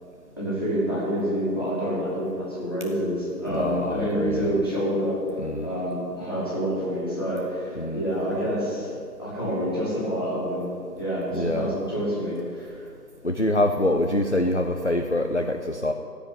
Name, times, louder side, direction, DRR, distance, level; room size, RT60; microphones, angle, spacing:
voice 1, 0.4-5.2 5.6-8.9 9.2-10.7 11.0-12.8, equal, 15° left, -10 dB, 2.2 m, -27 dB
voice 2, 3.5-4.6 5.4-5.7 7.8-8.0 11.3-11.7 13.2-15.9, left 1 dB, 45° left, 4 dB, 0.6 m, -25 dB
15.0 x 5.1 x 9.6 m, 2.3 s
figure-of-eight pair, 175°, 49 cm